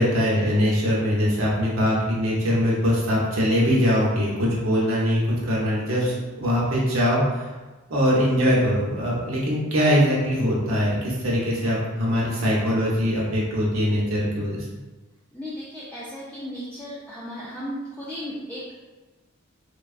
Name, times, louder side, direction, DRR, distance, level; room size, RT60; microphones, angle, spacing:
voice 1, 0.0-7.5 7.9-14.7, equal, 75° right, -5 dB, 0.9 m, -22 dB
voice 2, 15.3-18.7, equal, 5° left, -10 dB, 0.4 m, -35 dB
3.2 x 2.3 x 2.4 m, 1.2 s
head